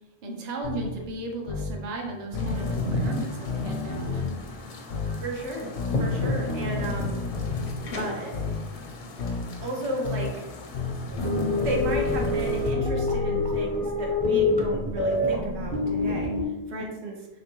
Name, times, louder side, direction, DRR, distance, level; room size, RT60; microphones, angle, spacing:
voice 1, 0.2-4.4, right 2 dB, 45° right, 1 dB, 0.6 m, -35 dB
sound 1, 0.6-0.9 1.5-1.7 2.3-4.3 4.9-5.2 5.8-7.7 8.3-8.6 9.2-9.5 10.0-10.3 10.7-13.5, left 4 dB, 85° left, 0.9 m, -31 dB
sound 2, 2.3-12.7, left 2 dB, 55° left, 0.6 m, -36 dB
voice 2, 5.2-5.7 6.0-7.2 7.9-8.4 9.6-10.5 11.6-16.3 16.7-17.3, right 1 dB, 85° right, 0 dB, 1.0 m, -33 dB
sound 3, 11.1-16.5, left 2 dB, 10° left, 0.4 m, -26 dB
3.2 x 3.0 x 3.0 m, 1.1 s
omnidirectional pair, 1.1 m